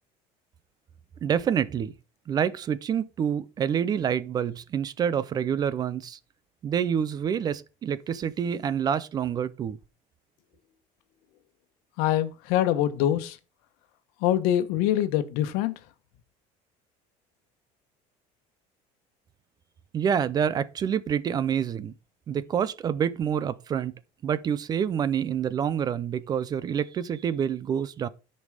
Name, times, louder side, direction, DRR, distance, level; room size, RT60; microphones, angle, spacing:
voice 1, 1.2-1.9 2.3-6.2 6.6-9.8 19.9-21.9 22.3-23.9 24.2-28.1, right 8 dB, 25° right, 0.4 m, -27 dB
voice 2, 12.0-13.4 14.2-15.7, left 12 dB, 80° left, 1.2 m, -24 dB
9.8 x 5.4 x 4.9 m
cardioid pair, 165°, 15 cm